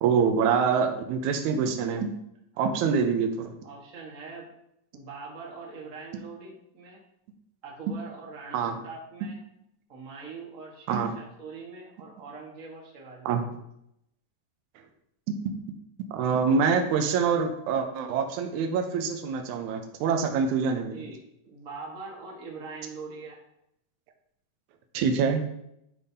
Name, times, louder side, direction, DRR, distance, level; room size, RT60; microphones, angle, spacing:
voice 1, 0.0-2.1 2.6-3.6 8.5-8.8 10.9-11.1 13.3-13.4 15.3-15.4 16.1-21.0 24.9-25.4, right 6 dB, 75° right, 5 dB, 1.9 m, -25 dB
voice 2, 2.5-3.0 3.6-4.5 4.9-7.0 7.6-9.4 9.9-13.4 20.9-23.4, right 4 dB, 50° right, -3 dB, 0.9 m, -43 dB
10.5 x 5.5 x 2.8 m, 0.78 s
omnidirectional pair, 4.0 m